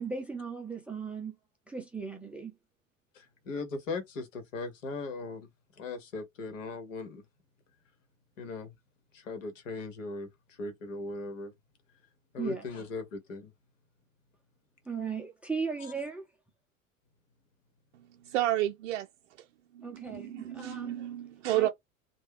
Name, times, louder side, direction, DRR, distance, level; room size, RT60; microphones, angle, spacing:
voice 1, 0.0-1.4 1.7-2.5 12.4-12.7 14.9-16.2 19.8-21.0 21.5-21.7, right 5 dB, 5° right, 0.4 m, -37 dB
voice 2, 3.1-5.5 5.8-7.2 8.4-8.7 9.1-10.3 10.6-11.5 12.3-13.5, left 3 dB, 65° left, 1.2 m, -38 dB
voice 3, 17.9-19.5 19.7-21.7, right 14 dB, 60° right, 0.5 m, -32 dB
3.2 x 2.2 x 3.3 m
figure-of-eight pair, 75°, 41 cm